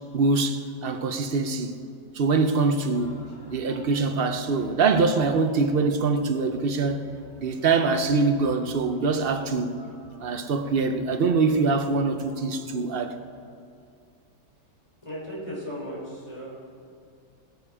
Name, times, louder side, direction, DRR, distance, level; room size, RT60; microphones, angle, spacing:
voice 1, 0.1-1.8 2.1-3.2 3.5-7.1 7.4-9.8 10.2-13.2, right 4 dB, 55° right, 0.6 m, -24 dB
sound 1, 2.8-13.3, left 1 dB, 85° left, 4.7 m, -50 dB
voice 2, 15.0-16.8, equal, 15° left, 3.9 m, -36 dB
17.5 x 10.5 x 4.9 m
omnidirectional pair, 1.8 m